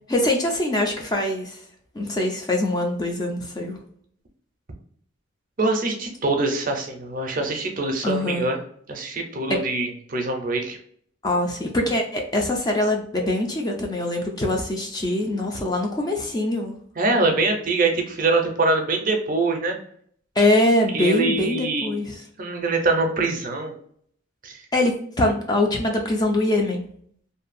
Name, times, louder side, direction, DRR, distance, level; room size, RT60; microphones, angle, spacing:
voice 1, 0.1-1.6 1.9-3.8 8.0-8.4 9.5-9.6 11.2-16.7 20.4-22.2 24.7-26.8, left 1 dB, 20° left, 1 dB, 0.4 m, -23 dB
voice 2, 5.6-8.6 8.9-10.8 17.0-19.8 20.9-21.9 22.4-23.7 24.4-24.6, right 3 dB, 40° right, 3 dB, 0.5 m, -24 dB
2.6 x 2.3 x 2.5 m, 0.62 s
head